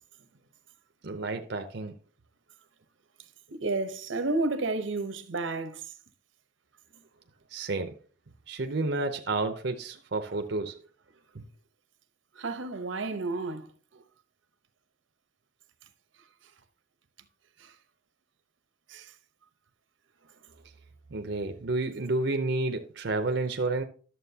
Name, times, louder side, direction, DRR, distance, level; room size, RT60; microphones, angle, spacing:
voice 1, 1.0-1.9 7.5-8.0 8.5-10.8 11.3-11.4 21.1-23.8, right 2 dB, 60° right, 0.7 m, -30 dB
voice 2, 3.5-5.9 12.4-13.7 13.9-14.0 17.6-17.7 18.9-19.1, right 3 dB, 85° right, 0.9 m, -31 dB
11.0 x 7.4 x 2.8 m
head